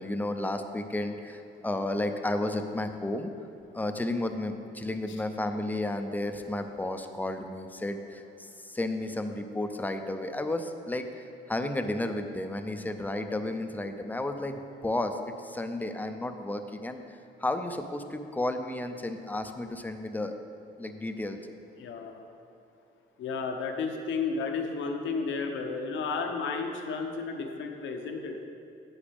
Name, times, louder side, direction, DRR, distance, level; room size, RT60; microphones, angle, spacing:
voice 1, 0.0-3.3 3.7-20.4 20.8-21.4, left 1 dB, 10° left, 6 dB, 0.6 m, -32 dB
voice 2, 21.8-22.2 23.2-28.4, left 4 dB, 75° left, 3 dB, 0.9 m, -32 dB
9.9 x 8.1 x 3.5 m, 2.6 s
cardioid pair, 90°, 20 cm